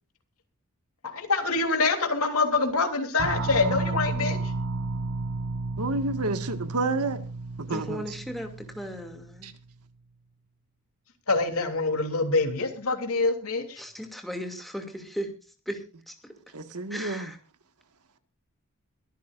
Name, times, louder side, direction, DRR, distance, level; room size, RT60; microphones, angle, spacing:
voice 1, 1.1-4.4 11.3-13.8, left 3 dB, 70° left, 3.2 m, -25 dB
sound 1, 3.2-9.5, right 3 dB, 60° right, 1.3 m, -32 dB
voice 2, 5.8-7.2 7.6-8.1 9.4-9.5 16.5-17.3, right 2 dB, 90° right, 1.7 m, -29 dB
voice 3, 7.7-9.5 13.8-15.3 15.7-16.3 16.9-17.4, equal, ahead, 2.5 m, -36 dB
23.0 x 14.0 x 2.5 m
head